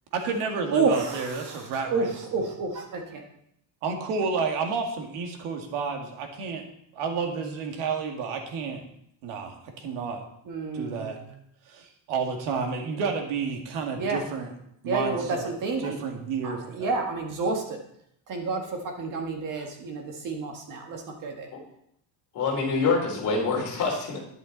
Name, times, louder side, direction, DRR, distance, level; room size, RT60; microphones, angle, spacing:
voice 1, 0.1-2.1 3.8-6.6 6.9-8.8 9.2-10.2 10.7-11.2 11.7-14.5 14.8-15.5 15.8-16.9 19.0-19.1 19.5-19.7, right 5 dB, 75° right, 3 dB, 2.3 m, -31 dB
voice 2, 0.7-3.2 10.5-11.3 14.0-14.2 14.9-16.0 16.4-17.8 18.3-21.5, right 4 dB, 40° right, 2 dB, 1.7 m, -30 dB
voice 3, 22.3-24.2, left 4 dB, 35° left, -1 dB, 3.2 m, -26 dB
11.0 x 10.5 x 4.0 m, 0.73 s
cardioid pair, 180°, 49 cm